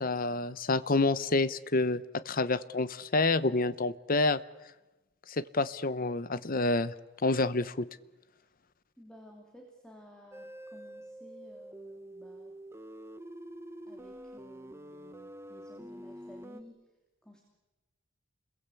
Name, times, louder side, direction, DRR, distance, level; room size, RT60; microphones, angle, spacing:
voice 1, 0.0-4.4 5.3-6.9 7.2-7.9, left 3 dB, 40° left, 15 dB, 0.9 m, -28 dB
voice 2, 9.0-12.6 13.9-16.8 17.2-17.4, equal, 5° left, 1 dB, 2.8 m, -54 dB
sound 1, 10.3-16.6, right 1 dB, 10° right, 1.2 m, -47 dB
29.5 x 22.0 x 8.4 m, 1.1 s
head